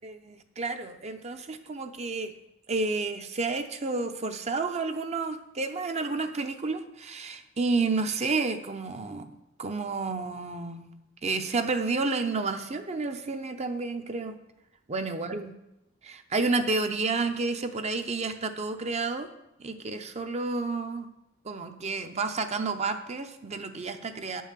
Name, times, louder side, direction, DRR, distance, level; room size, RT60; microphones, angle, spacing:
voice 1, 0.0-2.3 2.7-10.9 11.2-14.4 14.9-15.5 16.0-19.3 19.6-21.1 21.4-24.4, right 3 dB, 35° right, 7 dB, 0.7 m, -30 dB
9.3 x 5.5 x 7.3 m, 0.91 s
head